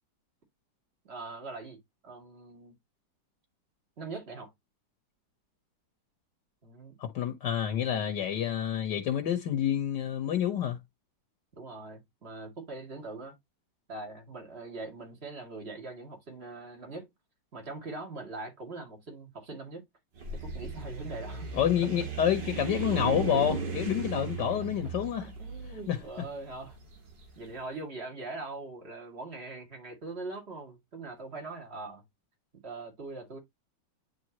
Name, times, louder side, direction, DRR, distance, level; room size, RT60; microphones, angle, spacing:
voice 1, 1.0-2.8 4.0-4.5 6.6-7.0 11.6-13.4 13.9-17.1 17.5-19.8 20.3-21.5 22.2-22.5 24.8-24.9 25.2-26.8 27.4-32.0 32.5-33.4, right 3 dB, 35° right, 2.4 m, -42 dB
voice 2, 7.0-10.8 21.5-25.3 25.9-26.0, left 10 dB, 75° left, 1.6 m, -28 dB
sound 1, 20.2-27.3, right 4 dB, 75° right, 2.4 m, -36 dB
10.5 x 3.5 x 2.9 m
omnidirectional pair, 2.0 m